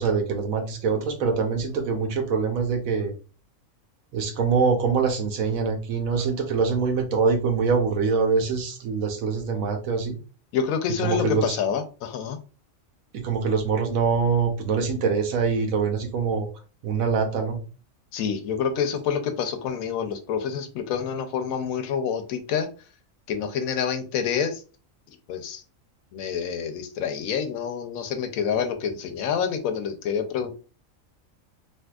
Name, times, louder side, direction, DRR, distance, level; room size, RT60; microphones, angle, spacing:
voice 1, 0.0-3.1 4.1-10.2 11.0-11.6 13.1-16.5 16.8-17.6, right 5 dB, 90° right, 4 dB, 1.2 m, -24 dB
voice 2, 10.5-12.4 18.1-22.7 23.3-24.6 25.1-25.6 26.1-30.5, left 7 dB, 85° left, 8 dB, 1.0 m, -27 dB
3.5 x 2.7 x 2.3 m, 0.36 s
omnidirectional pair, 1.4 m